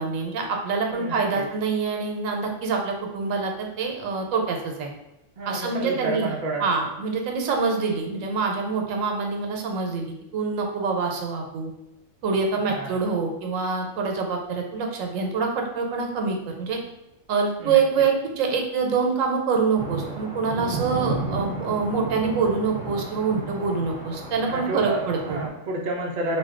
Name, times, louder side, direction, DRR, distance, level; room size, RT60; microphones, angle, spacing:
voice 1, 0.0-4.9 5.5-6.3 6.6-11.7 12.2-16.8 17.3-25.4, right 5 dB, 85° right, 2 dB, 1.0 m, -25 dB
voice 2, 0.9-1.5 5.4-6.7 12.5-13.0 17.6-17.8 24.5-26.4, right 2 dB, 60° right, -2 dB, 0.5 m, -30 dB
sound 1, 19.8-25.5, right 2 dB, 90° left, 1.3 m, -33 dB
2.5 x 2.2 x 3.6 m, 0.91 s
omnidirectional pair, 1.4 m